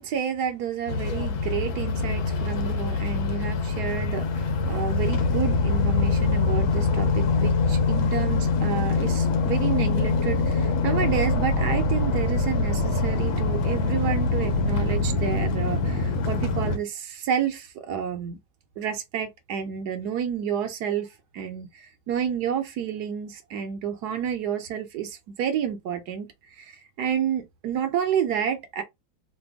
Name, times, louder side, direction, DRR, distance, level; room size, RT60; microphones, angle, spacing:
voice 1, 0.0-18.4 18.8-21.1 21.3-26.3 26.6-28.8, right 8 dB, 70° right, 1.0 m, -30 dB
sound 1, 0.9-16.8, left 3 dB, 85° left, 1.5 m, -24 dB
3.4 x 2.2 x 3.3 m
omnidirectional pair, 2.1 m